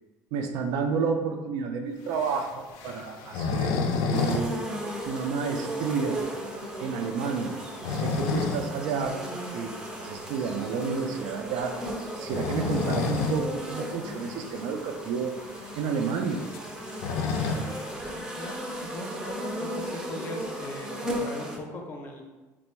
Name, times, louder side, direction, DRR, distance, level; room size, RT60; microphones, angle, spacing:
voice 1, 0.3-4.6 5.1-6.2 6.8-9.2 9.5-11.7 12.1-16.5, right 5 dB, 75° right, 4 dB, 0.4 m, -31 dB
sound 1, 2.1-4.5 4.7-4.8 5.3-5.4 5.9-6.0 7.5-8.7 9.1-9.2 10.8-11.0 12.2-13.5 13.8-13.9 14.2-14.3 15.0-15.1 15.3-17.9, left 4 dB, 75° left, 0.4 m, -29 dB
sound 2, 4.1-21.6, right 1 dB, 10° right, 0.4 m, -36 dB
voice 2, 17.4-22.2, left 1 dB, 30° left, 1 dB, 0.6 m, -40 dB
3.4 x 2.1 x 4.3 m, 1.2 s
cardioid pair, 155°, 7 cm